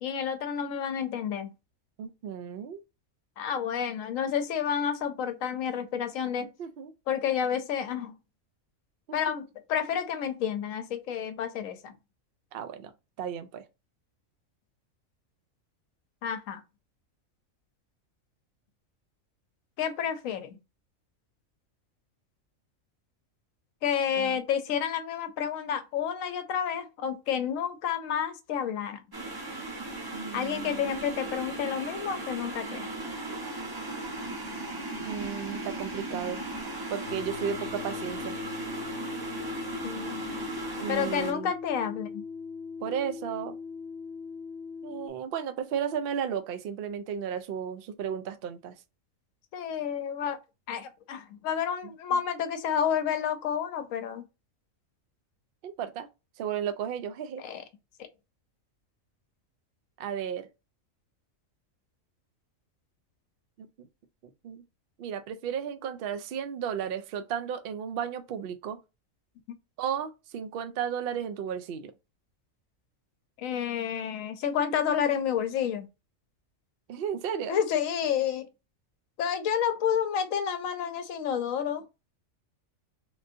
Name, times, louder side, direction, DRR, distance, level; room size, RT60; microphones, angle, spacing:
voice 1, 0.0-1.5 3.4-6.5 7.1-8.1 9.1-11.9 16.2-16.6 19.8-20.6 23.8-29.0 30.3-32.9 39.8-40.3 40.9-42.2 49.5-50.4 50.7-54.2 57.4-57.6 58.0-58.1 73.4-75.9 77.5-78.5 79.2-81.8, left 8 dB, 80° left, 1.0 m, -30 dB
voice 2, 2.0-2.8 6.4-6.9 9.1-9.3 12.5-12.9 13.2-13.6 24.1-24.4 30.1-31.0 35.0-36.4 36.9-38.4 40.8-41.5 42.8-43.6 44.8-48.8 51.8-52.2 55.6-56.1 56.4-57.4 60.0-60.5 63.6-63.9 64.4-64.6 65.0-68.8 69.8-71.9 76.9-77.6, right 8 dB, 65° right, 0.5 m, -34 dB
sound 1, 29.1-41.3, right 2 dB, 20° right, 0.7 m, -37 dB
sound 2, 37.0-45.1, left 5 dB, 55° left, 0.9 m, -40 dB
3.6 x 2.6 x 2.5 m
omnidirectional pair, 1.4 m